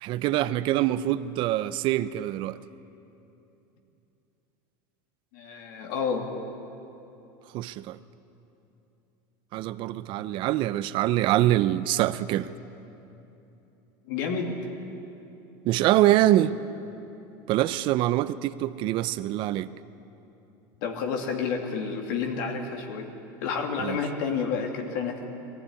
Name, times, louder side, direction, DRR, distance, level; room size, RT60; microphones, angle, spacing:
voice 1, 0.0-2.6 7.5-8.0 9.5-12.5 15.6-16.6 17.5-19.7 23.8-24.0, right 14 dB, 50° right, 14 dB, 0.7 m, -24 dB
voice 2, 5.3-6.3 14.1-14.6 20.8-23.1 23.4-25.2, left 5 dB, 75° left, 3 dB, 2.7 m, -30 dB
20.0 x 15.0 x 9.8 m, 2.9 s
supercardioid pair, 125°, 11 cm